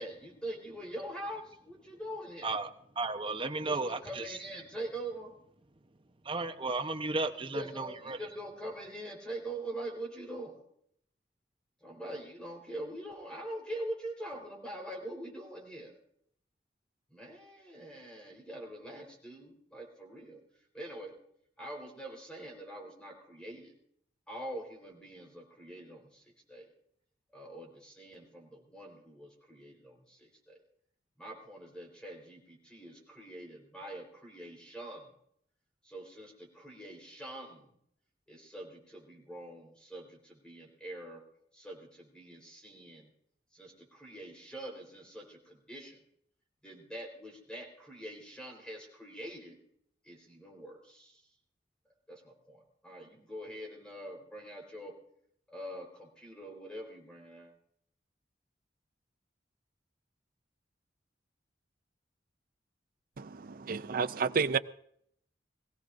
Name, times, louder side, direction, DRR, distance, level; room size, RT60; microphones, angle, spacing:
voice 1, 0.0-2.5 3.6-5.3 7.4-10.6 11.8-16.0 17.1-20.4 20.7-21.1 21.6-23.7 24.3-26.7 27.3-30.6 31.2-35.1 35.8-37.8 38.3-41.2 41.5-43.1 43.5-46.0 46.6-49.6 50.0-51.2 52.1-54.9 55.5-57.5, right 1 dB, 5° left, 4.1 m, -44 dB
voice 2, 3.0-4.5 6.2-8.2, right 3 dB, 30° right, 0.9 m, -34 dB
voice 3, 63.7-64.6, right 5 dB, 55° right, 0.5 m, -29 dB
23.0 x 16.0 x 2.6 m
head